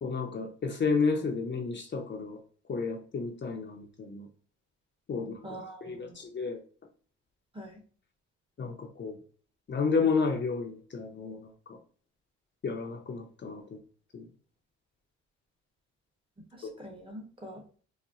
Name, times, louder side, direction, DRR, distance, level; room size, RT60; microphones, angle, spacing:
voice 1, 0.0-2.4 2.7-4.3 5.1-6.6 8.6-9.2 9.7-11.8 12.6-13.8 14.1-14.3, left 4 dB, 40° left, 2 dB, 0.7 m, -31 dB
voice 2, 5.4-6.2 7.5-7.8 16.5-17.6, right 1 dB, 15° right, 3 dB, 0.9 m, -44 dB
4.1 x 2.1 x 2.4 m, 0.41 s
cardioid pair, 90°, 30 cm